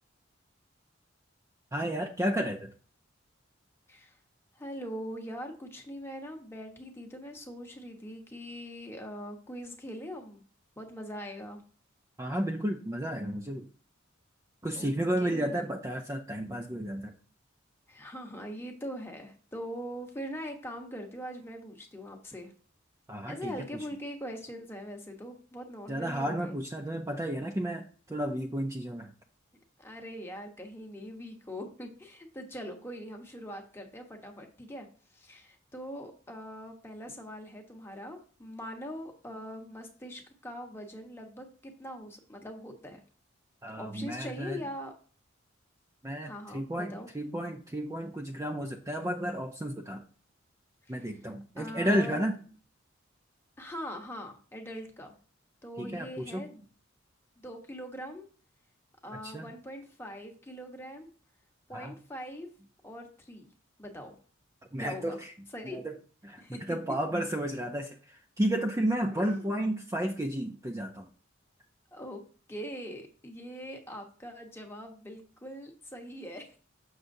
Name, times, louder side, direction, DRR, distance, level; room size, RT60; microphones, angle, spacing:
voice 1, 1.7-2.7 12.2-13.7 14.6-17.1 23.1-23.7 25.9-29.1 43.6-44.6 46.0-50.0 50.9-52.4 55.8-56.5 59.2-59.5 61.7-61.9 64.7-65.3 65.6-65.9 66.2-66.4 66.7-71.1, right 1 dB, 15° right, 2 dB, 0.5 m, -32 dB
voice 2, 4.5-10.4 10.8-11.6 14.7-14.9 15.2-15.7 17.9-22.5 23.3-26.6 29.8-34.9 35.1-43.0 43.8-44.9 46.2-47.1 50.9-51.1 51.6-52.2 53.6-55.2 55.6-56.6 57.4-58.2 59.0-61.1 61.7-62.5 62.8-63.5 63.8-64.1 64.8-65.2 65.5-65.8 66.4-66.6 69.2-69.5 71.9-72.2 72.5-76.6, equal, 10° left, 2 dB, 1.0 m, -42 dB
6.9 x 6.4 x 2.6 m, 0.40 s
head